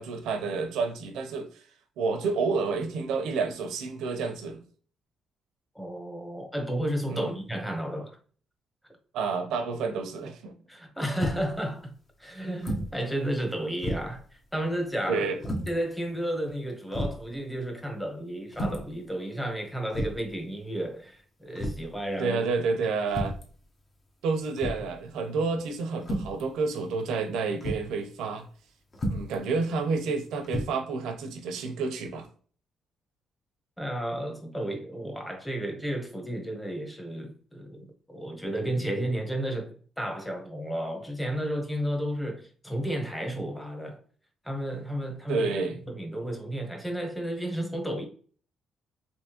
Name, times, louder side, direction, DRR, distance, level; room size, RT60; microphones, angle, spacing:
voice 1, 0.0-1.6 2.0-4.6 7.1-7.4 9.1-10.5 15.1-15.4 22.2-23.4 24.2-28.5 29.1-32.3 38.8-38.9 45.3-45.8, right 4 dB, 85° right, 0.7 m, -29 dB
voice 2, 5.7-8.2 10.7-11.9 12.2-15.3 15.7-22.4 33.8-44.0 44.4-45.5 45.9-48.1, right 1 dB, 5° left, 1.0 m, -32 dB
sound 1, 11.2-11.6 12.6-13.0 13.3-13.4 13.8-14.2 15.4-15.7 16.5-16.6 16.9-17.2 18.5-18.9 19.9-20.3 21.6-21.9 23.1-23.5 24.6-24.9 26.0-26.4 27.6-27.9 28.9-29.4 30.4-30.6, equal, 35° left, 1.0 m, -32 dB
3.6 x 2.8 x 2.9 m
cardioid pair, 90°, 0 cm